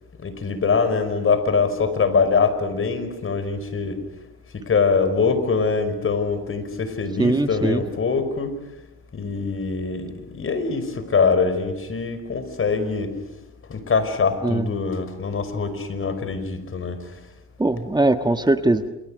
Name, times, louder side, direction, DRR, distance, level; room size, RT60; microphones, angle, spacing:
voice 1, 0.2-4.0 4.5-8.5 9.1-13.1 13.7-17.1, left 5 dB, 45° left, 10 dB, 5.2 m, -23 dB
voice 2, 7.2-7.8 14.4-14.7 17.6-18.9, right 2 dB, 15° right, 8 dB, 1.5 m, -20 dB
30.0 x 28.5 x 6.5 m, 0.91 s
cardioid pair, 90°, 30 cm